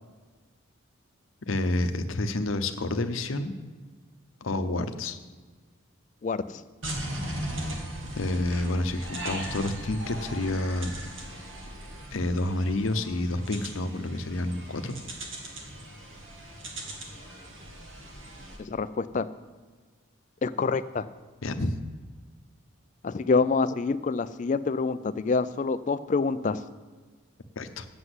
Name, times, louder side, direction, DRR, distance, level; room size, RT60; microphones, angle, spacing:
voice 1, 1.4-3.5 4.4-5.2 8.2-10.9 12.1-14.9 21.4-21.7 27.6-27.9, left 2 dB, 75° left, 9 dB, 0.8 m, -29 dB
voice 2, 6.2-6.6 18.6-19.3 20.4-21.1 23.0-26.6, left 4 dB, 35° left, 13 dB, 0.3 m, -26 dB
sound 1, 6.8-18.6, right 1 dB, 70° right, 1.8 m, -38 dB
7.9 x 6.8 x 8.0 m, 1.4 s
head